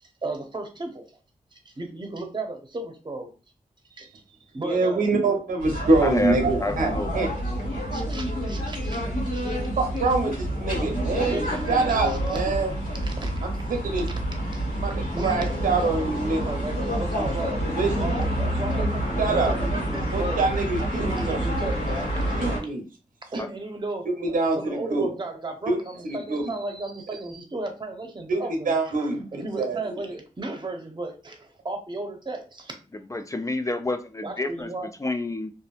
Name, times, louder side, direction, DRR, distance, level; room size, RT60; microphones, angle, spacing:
voice 1, 0.0-1.1 1.5-3.3 3.9-4.2 4.5-5.1 7.9-9.1 9.3-9.6 11.1-12.4 13.0-13.3 14.1-14.2 14.5-14.7 15.0-20.4 21.0-22.3 23.3-24.1 24.6-32.7 34.2-34.9, right 2 dB, 35° right, 4 dB, 0.8 m, -35 dB
voice 2, 4.6-7.3 9.8-11.3 11.7-12.7 13.4-14.1 14.8-16.4 17.8-17.9 19.2-19.5 20.1-21.4 22.4-22.8 24.2-25.1 25.7-25.8 26.0-26.4 28.3-29.2 29.6-29.8, right 3 dB, 85° right, 3 dB, 0.7 m, -25 dB
sound 1, 5.6-22.6, equal, 90° left, 1.3 m, -28 dB
voice 3, 6.0-7.3 23.4-23.5 33.1-34.7 35.0-35.5, left 2 dB, 25° left, 8 dB, 0.4 m, -29 dB
2.7 x 2.5 x 2.4 m, 0.33 s
cardioid pair, 50°, 14 cm